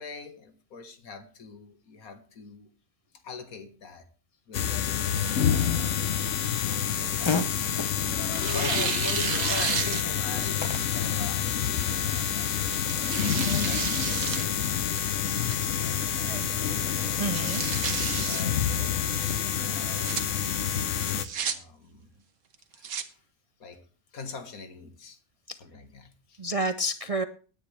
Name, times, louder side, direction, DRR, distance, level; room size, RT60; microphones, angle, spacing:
voice 1, 0.0-2.7 3.2-4.1 4.5-6.1 6.4-7.4 8.5-12.6 12.8-17.3 17.9-20.6 21.4-22.2 22.7-23.3 23.6-23.9 24.1-25.2 25.6-26.4, left 4 dB, 85° left, 8 dB, 2.0 m, -43 dB
sound 1, 4.5-21.2, left 9 dB, 65° left, 1.1 m, -28 dB
Fart, 5.9-13.6, left 4 dB, 25° left, 0.7 m, -38 dB
Tearing, 6.5-7.9 8.4-10.4 10.8-10.9 11.8-12.1 12.7-14.5 14.8-14.9 15.5-15.9 16.3-16.4 16.7-16.8 17.2-18.4 19.7-20.2 21.0-21.5 22.5-23.0, right 7 dB, 85° right, 1.6 m, -32 dB
voice 2, 16.1-16.5 17.2-17.6 25.5-25.6 26.4-27.2, right 1 dB, 55° right, 10 dB, 0.4 m, -30 dB
17.5 x 9.6 x 3.4 m, 0.39 s
omnidirectional pair, 1.5 m